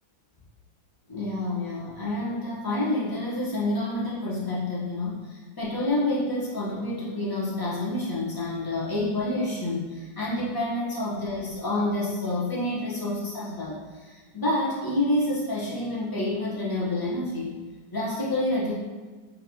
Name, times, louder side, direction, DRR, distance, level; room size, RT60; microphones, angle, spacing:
voice 1, 1.1-17.6 17.9-18.7, left 1 dB, 35° left, -6 dB, 0.3 m, -28 dB
4.0 x 2.7 x 4.2 m, 1.3 s
omnidirectional pair, 2.0 m